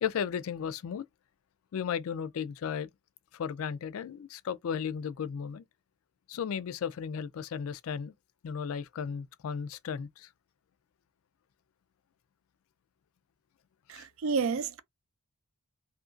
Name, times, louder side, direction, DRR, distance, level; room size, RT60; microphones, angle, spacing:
voice 1, 0.0-1.0 1.7-2.9 3.3-5.6 6.3-8.1 8.4-10.3 13.9-14.0, left 7 dB, 75° left, 0.3 m, -35 dB
voice 2, 13.9-14.8, right 5 dB, 70° right, 0.4 m, -30 dB
2.8 x 2.4 x 2.4 m
head